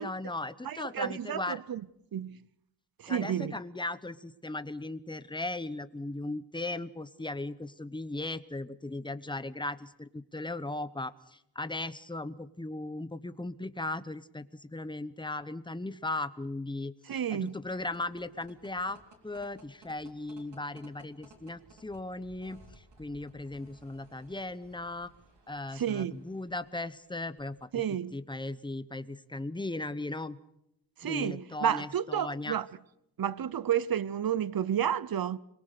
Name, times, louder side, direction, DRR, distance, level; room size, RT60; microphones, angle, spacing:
voice 1, 0.0-1.6 3.1-19.0 19.2-25.1 25.5-27.7 28.1-30.4 31.0-32.6, left 2 dB, 10° left, 0.9 m, -37 dB
voice 2, 0.6-1.8 2.1-2.4 3.0-3.5 17.1-17.6 25.7-26.1 27.7-28.1 31.0-32.7 33.2-35.4, right 9 dB, 55° right, 0.8 m, -31 dB
sound 1, 17.2-27.9, right 2 dB, 75° right, 3.7 m, -59 dB
26.0 x 22.5 x 6.6 m
wide cardioid pair, 125°, 42 cm